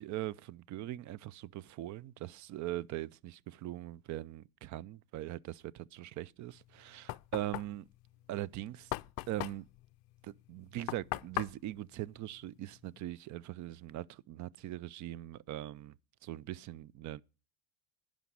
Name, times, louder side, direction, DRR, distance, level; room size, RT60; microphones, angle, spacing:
voice 1, 0.0-7.8 8.3-8.9 9.3-9.6 10.2-15.9 16.2-17.2, right 14 dB, 45° right, 0.5 m, -41 dB
Knock, 6.5-13.0, left 21 dB, 55° left, 0.5 m, -42 dB
11.0 x 5.2 x 8.4 m
supercardioid pair, 105°, 42 cm